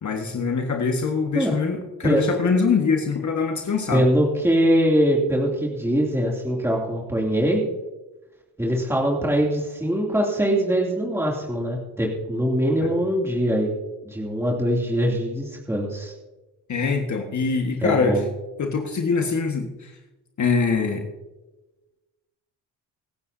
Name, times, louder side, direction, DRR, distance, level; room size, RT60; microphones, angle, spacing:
voice 1, 0.0-4.1 12.8-12.9 16.7-18.2 18.6-19.9 20.4-21.0, left 5 dB, 45° left, 3 dB, 1.8 m, -23 dB
voice 2, 3.9-7.6 8.6-13.7 14.0-16.1 17.8-18.2, equal, 5° right, -2 dB, 2.9 m, -22 dB
26.5 x 9.5 x 2.8 m, 1.1 s
supercardioid pair, 75°, 41 cm